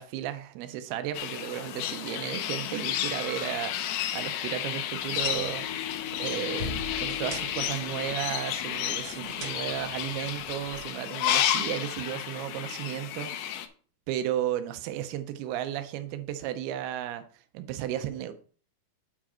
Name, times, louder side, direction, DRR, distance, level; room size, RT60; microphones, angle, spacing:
voice 1, 0.0-5.7 6.2-13.5 14.1-17.2 17.5-18.3, right 11 dB, 90° right, 2.7 m, -34 dB
sound 1, 1.1-13.7, left 11 dB, 80° left, 2.6 m, -32 dB
sound 2, 4.9-10.9, right 1 dB, 60° right, 1.2 m, -43 dB
9.6 x 4.8 x 4.3 m
omnidirectional pair, 4.4 m